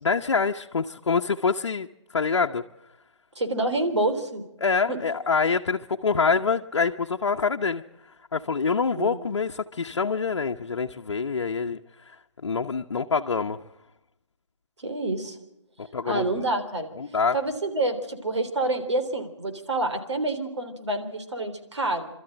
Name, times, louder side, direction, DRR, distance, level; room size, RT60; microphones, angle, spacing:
voice 1, 0.0-1.9 2.1-2.6 4.6-7.8 8.3-11.8 12.4-13.6 15.8-16.4 17.0-17.4, left 5 dB, 70° left, 1 dB, 0.9 m, -25 dB
voice 2, 3.4-4.4 4.9-5.0 9.0-9.3 14.8-15.4 16.0-16.9 17.3-22.1, right 2 dB, 75° right, 6 dB, 3.6 m, -27 dB
27.5 x 13.0 x 8.9 m, 0.90 s
figure-of-eight pair, 155°, 15 cm